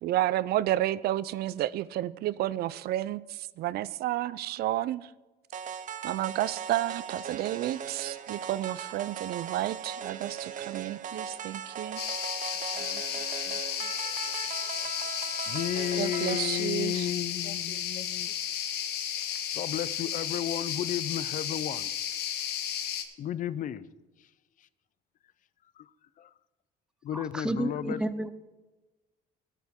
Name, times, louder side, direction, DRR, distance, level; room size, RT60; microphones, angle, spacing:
voice 1, 0.0-5.1 6.0-12.0 16.0-17.1, right 14 dB, 70° right, 18 dB, 0.4 m, -31 dB
sound 1, 5.5-16.6, right 7 dB, 50° right, 0.8 m, -39 dB
sound 2, 12.0-23.0, left 9 dB, 75° left, 1.1 m, -33 dB
voice 2, 12.7-13.9 15.5-18.3 19.5-21.9 23.2-23.9 25.8-25.9 26.2-26.3 27.0-28.0, left 11 dB, 50° left, 17 dB, 0.5 m, -34 dB
voice 3, 27.1-28.3, right 1 dB, 5° right, 12 dB, 0.7 m, -31 dB
13.5 x 9.2 x 3.7 m, 1.2 s
cardioid pair, 110°, 17 cm